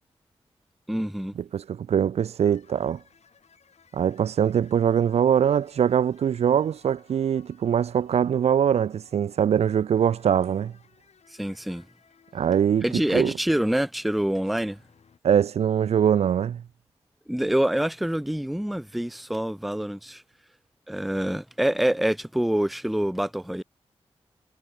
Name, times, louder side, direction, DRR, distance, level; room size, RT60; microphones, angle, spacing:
voice 1, 0.9-1.3 11.3-11.9 12.8-14.8 17.3-20.2 20.9-23.6, right 1 dB, ahead, 0.4 m, -26 dB
voice 2, 1.5-3.0 3.9-10.7 12.3-12.9 13.1-13.3 15.2-16.6, right 8 dB, 70° right, 0.4 m, -22 dB
sound 1, 2.5-13.6 14.1-15.2, left 6 dB, 75° left, 7.9 m, -60 dB
cardioid pair, 45°, 11 cm